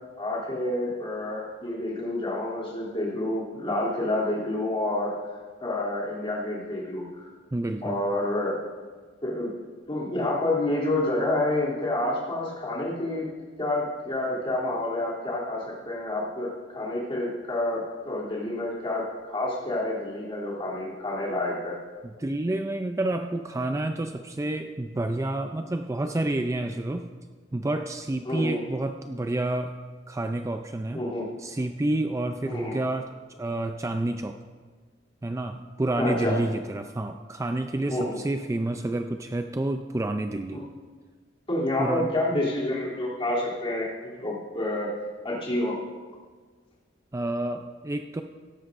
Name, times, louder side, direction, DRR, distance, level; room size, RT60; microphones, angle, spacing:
voice 1, 0.2-7.3 7.8-8.5 9.2-9.5 9.9-13.3 13.6-21.8 28.3-28.6 30.9-31.3 32.4-32.8 36.0-36.4 37.9-38.2 40.5-40.6 41.5-44.9 45.2-45.8, left 1 dB, 30° left, -5 dB, 3.0 m, -28 dB
voice 2, 7.5-8.0 22.0-27.1 27.5-29.8 30.1-31.0 31.4-34.4 35.2-40.6 41.8-42.1 47.1-48.2, right 2 dB, 15° right, 6 dB, 0.4 m, -29 dB
17.0 x 13.0 x 2.6 m, 1.5 s
head